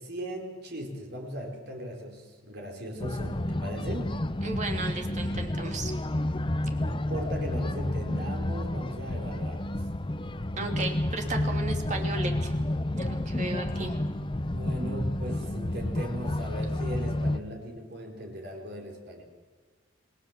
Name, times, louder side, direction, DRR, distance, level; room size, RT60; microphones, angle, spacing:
voice 1, 0.0-4.2 6.5-9.6 14.5-19.2, equal, 55° right, 1 dB, 4.6 m, -38 dB
sound 1, 3.0-17.4, left 1 dB, 25° left, 0.7 m, -30 dB
voice 2, 4.4-5.9 10.6-12.5 12.9-14.0, right 2 dB, 35° right, 3 dB, 2.9 m, -34 dB
27.5 x 19.5 x 7.5 m, 1.5 s
head